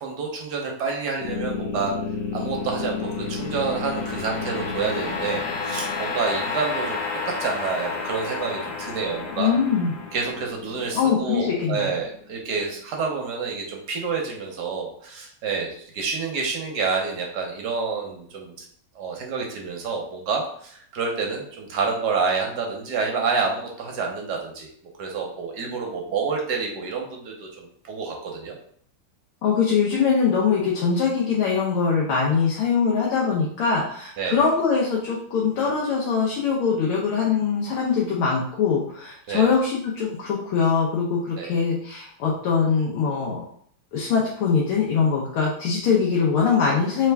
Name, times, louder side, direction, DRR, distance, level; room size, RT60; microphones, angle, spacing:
voice 1, 0.0-1.9 2.3-7.0 7.3-9.5 10.1-18.5 19.0-24.7 25.0-28.5 34.2-34.4 39.3-39.5 41.4-41.5, right 5 dB, 65° right, 0 dB, 1.1 m, -28 dB
sound 1, 1.2-12.4, left 4 dB, 60° left, 1.0 m, -31 dB
voice 2, 9.4-9.9 10.9-11.9 29.4-43.4 43.9-47.1, left 6 dB, 80° left, -3 dB, 1.6 m, -22 dB
3.5 x 3.3 x 3.3 m, 0.62 s
omnidirectional pair, 2.4 m